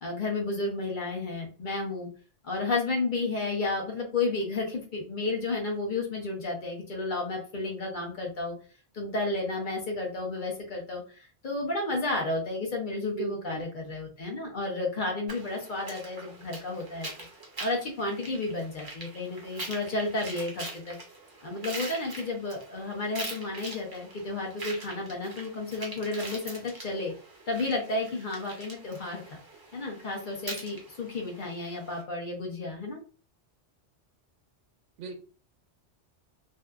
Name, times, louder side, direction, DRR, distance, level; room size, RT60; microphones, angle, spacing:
voice 1, 0.0-2.1 2.4-8.5 8.9-17.1 17.6-21.0 21.4-27.1 27.5-29.2 29.7-33.0, left 2 dB, 50° left, -1 dB, 0.7 m, -32 dB
voice 2, 13.2-13.6 35.0-35.2, right 7 dB, 90° right, 7 dB, 0.9 m, -37 dB
sound 1, 15.3-32.0, right 2 dB, 25° right, 0.5 m, -43 dB
2.7 x 2.3 x 2.2 m, 0.38 s
omnidirectional pair, 1.2 m